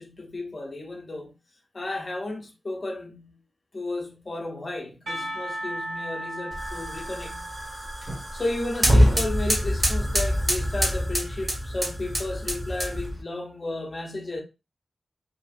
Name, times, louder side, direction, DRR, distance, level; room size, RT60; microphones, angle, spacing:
voice 1, 0.0-1.4 1.7-3.4 3.7-7.5 8.3-14.4, left 2 dB, 40° left, 0.7 m, -33 dB
Percussion / Church bell, 5.1-10.1, right 1 dB, 70° right, 1.1 m, -37 dB
sound 1, 6.5-13.2, equal, 30° right, 0.9 m, -25 dB
2.8 x 2.5 x 2.4 m
wide cardioid pair, 80°, 0 cm